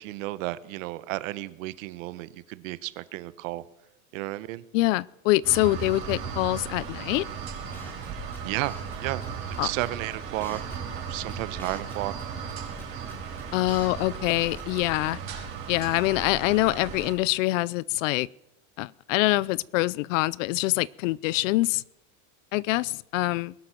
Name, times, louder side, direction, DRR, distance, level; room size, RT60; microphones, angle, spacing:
voice 1, 0.0-3.6 4.1-4.6 8.4-8.7 9.0-9.2 9.6-12.3, right 18 dB, 65° right, 16 dB, 1.1 m, -33 dB
voice 2, 4.7-7.3 9.6-9.7 13.5-15.2 15.7-18.3 18.8-21.8 22.5-23.5, left 19 dB, 65° left, 24 dB, 0.6 m, -25 dB
sound 1, 5.4-17.1, right 6 dB, 30° right, 6.1 m, -36 dB
sound 2, 7.7-8.1 8.3-9.0 9.2-9.3 9.5-10.2 10.4-11.0 11.3-12.2 12.5-14.0 14.3-14.4 14.6-14.9, equal, 5° left, 3.0 m, -44 dB
21.0 x 11.5 x 6.0 m, 0.84 s
supercardioid pair, 165°, 42 cm